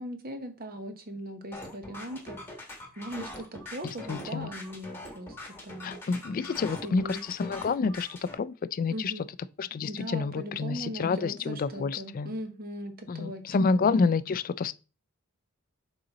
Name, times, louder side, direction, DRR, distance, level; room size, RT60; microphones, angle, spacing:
voice 1, 0.0-6.0 6.8-7.2 8.9-9.2 9.9-13.8, equal, 45° right, 1.1 m, -39 dB
sound 1, 1.5-8.4, left 1 dB, 10° left, 1.4 m, -43 dB
voice 2, 4.1-4.5 5.8-9.1 9.6-12.3 13.1-14.7, left 4 dB, 40° left, 0.3 m, -28 dB
6.6 x 4.0 x 4.1 m
head